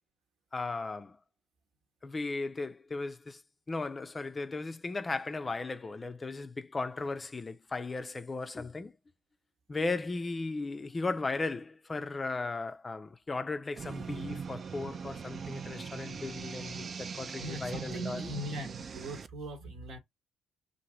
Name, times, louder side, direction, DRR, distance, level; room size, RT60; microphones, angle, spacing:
voice 1, 0.5-1.2 2.0-3.4 3.7-8.9 9.7-18.3, left 3 dB, 30° left, 0.4 m, -36 dB
sound 1, 13.8-19.3, right 6 dB, 45° right, 0.3 m, -41 dB
voice 2, 17.4-20.0, right 1 dB, 70° right, 1.0 m, -39 dB
2.9 x 2.6 x 3.1 m
hypercardioid pair, 55°, 0 cm